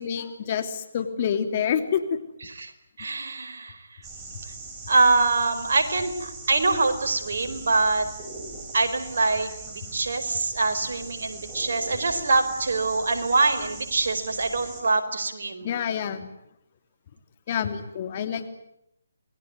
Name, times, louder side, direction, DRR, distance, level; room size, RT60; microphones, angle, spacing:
voice 1, 0.0-2.2 15.6-16.3 17.5-18.5, left 8 dB, 40° left, 9 dB, 3.1 m, -27 dB
voice 2, 3.0-3.8 4.9-8.0 8.7-15.7, right 3 dB, 65° right, 7 dB, 4.6 m, -24 dB
sound 1, 4.0-14.8, right 3 dB, 15° right, 6.6 m, -40 dB
28.0 x 21.0 x 9.7 m, 0.81 s
figure-of-eight pair, 150°, 0 cm